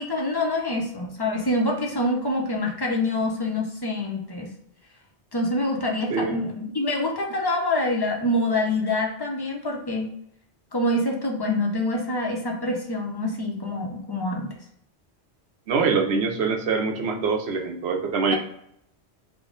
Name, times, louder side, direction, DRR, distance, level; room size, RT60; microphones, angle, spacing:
voice 1, 0.0-4.5 5.3-10.1 10.7-14.5 18.3-18.4, left 1 dB, 30° left, 0 dB, 0.5 m, -26 dB
voice 2, 15.7-18.4, right 4 dB, 70° right, 3 dB, 0.9 m, -24 dB
3.5 x 2.1 x 3.7 m, 0.73 s
omnidirectional pair, 1.1 m